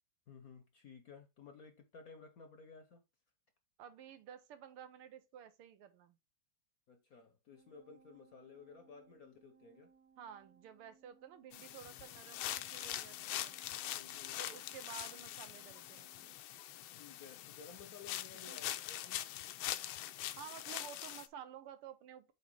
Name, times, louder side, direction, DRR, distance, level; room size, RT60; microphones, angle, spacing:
voice 1, 0.3-3.0 6.9-9.9 13.9-14.4 16.9-19.3, left 5 dB, 55° left, 1.0 m, -56 dB
voice 2, 3.8-6.2 10.2-13.6 14.4-16.3 18.5-18.6 20.3-22.3, right 9 dB, 80° right, 1.8 m, -52 dB
sound 1, 7.5-16.4, right 5 dB, 50° right, 1.2 m, -68 dB
sound 2, 11.5-21.3, left 13 dB, 80° left, 1.3 m, -43 dB
7.9 x 2.9 x 4.5 m
omnidirectional pair, 2.4 m